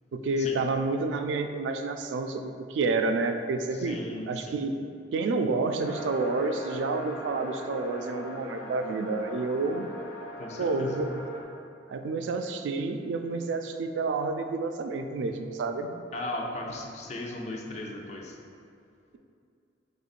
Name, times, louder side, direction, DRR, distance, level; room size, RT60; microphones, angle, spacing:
voice 1, 0.1-4.0 4.3-4.8 5.1-9.9 10.6-11.3 11.9-16.0, right 3 dB, 80° right, 7 dB, 0.3 m, -29 dB
voice 2, 3.8-4.6 10.4-11.0 16.1-18.3, left 2 dB, 40° left, 0 dB, 0.4 m, -37 dB
sound 1, 5.8-11.4, left 1 dB, 65° left, 0.8 m, -40 dB
5.3 x 3.4 x 2.4 m, 2.5 s
head